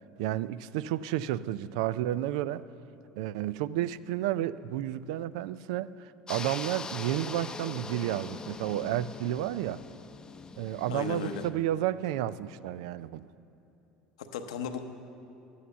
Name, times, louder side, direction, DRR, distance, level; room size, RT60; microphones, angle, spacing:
voice 1, 0.2-2.6 3.2-9.8 10.6-13.3, right 13 dB, 75° right, 0.3 m, -31 dB
sound 1, 6.3-11.5, left 4 dB, 20° left, 0.6 m, -42 dB
voice 2, 10.9-11.4 14.2-14.8, left 7 dB, 85° left, 0.8 m, -35 dB
11.5 x 8.5 x 6.9 m
hypercardioid pair, 85°, 3 cm